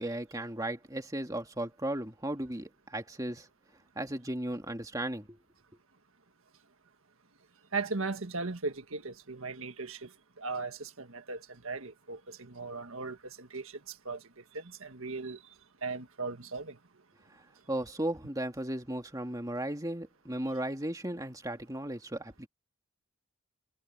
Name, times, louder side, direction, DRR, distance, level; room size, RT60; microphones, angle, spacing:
voice 1, 0.0-3.5 4.0-5.4 17.3-17.4 17.7-22.5, right 1 dB, 15° right, 2.3 m, -36 dB
voice 2, 7.7-10.1 10.4-15.4 15.8-16.8, right 3 dB, 65° right, 1.7 m, -38 dB
head